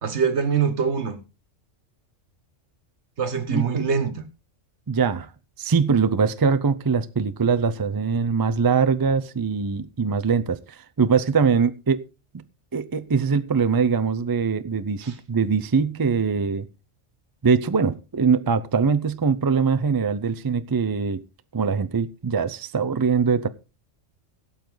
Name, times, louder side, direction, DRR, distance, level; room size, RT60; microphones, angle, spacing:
voice 1, 0.0-1.2 3.2-4.2 15.0-15.2, right 6 dB, 60° right, 1.6 m, -24 dB
voice 2, 3.5-3.9 4.9-5.3 5.6-12.0 12.7-16.7 17.4-21.2 21.5-23.5, right 5 dB, 35° right, 0.3 m, -22 dB
17.0 x 7.2 x 3.9 m
omnidirectional pair, 1.3 m